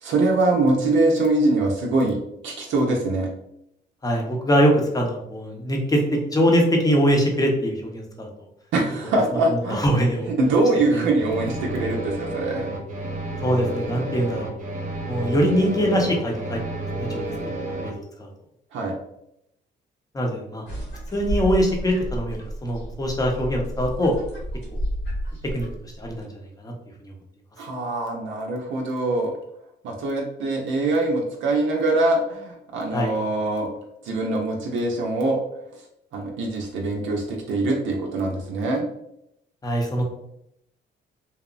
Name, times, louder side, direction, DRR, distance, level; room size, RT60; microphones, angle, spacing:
voice 1, 0.0-2.2 2.4-3.3 8.7-9.9 10.3-12.7 18.7-19.0 27.6-29.3 29.8-33.7 34.0-35.4 36.1-38.9, right 2 dB, 75° right, 0 dB, 0.5 m, -23 dB
voice 2, 4.0-8.3 9.5-10.3 10.9-11.1 13.4-14.6 15.1-16.6 17.0-17.3 17.8-18.3 20.1-20.7 21.1-24.1 25.5-25.7 26.0-26.3 26.6-26.7 27.0-27.1 32.9-33.1 39.6-40.0, equal, 20° left, 0 dB, 0.6 m, -22 dB
sound 1, 11.2-17.9, right 2 dB, 40° right, 0.7 m, -30 dB
sound 2, 20.7-26.2, equal, 80° left, 1.2 m, -31 dB
2.9 x 2.0 x 2.4 m, 0.79 s
cardioid pair, 90°, 20 cm